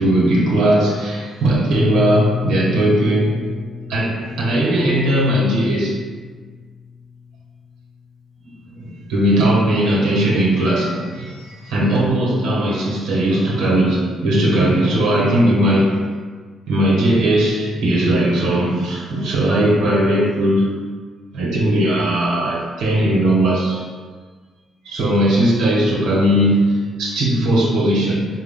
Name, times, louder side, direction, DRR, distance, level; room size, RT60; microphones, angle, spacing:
voice 1, 0.0-3.4 3.9-6.0 8.8-16.0 16.7-20.8 21.3-23.8 24.8-28.2, right 1 dB, 90° right, -3 dB, 1.1 m, -18 dB
sound 1, 1.5-7.3, left 6 dB, 70° right, 0.7 m, -29 dB
4.8 x 2.3 x 3.6 m, 1.5 s
cardioid pair, 90°, 0 cm